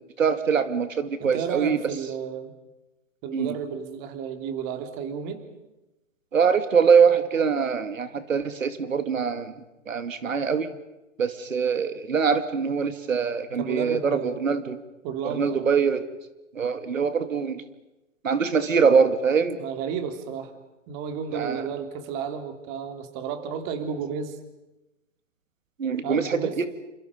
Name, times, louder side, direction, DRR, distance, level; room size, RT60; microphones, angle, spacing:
voice 1, 0.2-1.8 3.3-3.5 6.3-9.5 9.9-10.7 11.2-14.8 15.2-16.0 16.6-17.6 18.2-19.6 21.3-21.6 25.8-26.7, right 6 dB, 90° right, 10 dB, 2.4 m, -23 dB
voice 2, 1.2-2.5 3.2-5.5 13.6-14.4 15.0-15.7 19.6-20.5 20.9-24.4 26.0-26.6, right 7 dB, 30° right, 7 dB, 3.2 m, -32 dB
29.0 x 28.0 x 5.2 m, 0.99 s
hypercardioid pair, 140°, 38 cm